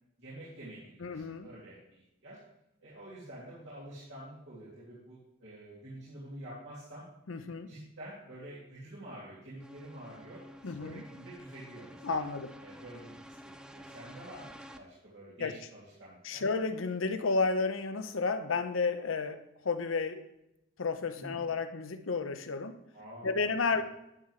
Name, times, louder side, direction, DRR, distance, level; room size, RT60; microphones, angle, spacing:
voice 1, 0.2-2.4 2.8-7.0 7.7-12.3 12.6-16.4 21.2-21.4 22.9-23.4 23.7-23.8, right 1 dB, 65° right, -9 dB, 2.6 m, -48 dB
voice 2, 1.0-1.5 7.3-7.7 10.6-11.0 12.0-12.5 15.4-15.5 16.2-20.2 20.8-22.8 23.2-23.8, left 4 dB, 90° left, 9 dB, 0.7 m, -32 dB
sound 1, 9.6-14.8, equal, 5° right, 0.4 m, -51 dB
11.0 x 7.5 x 3.2 m, 0.85 s
head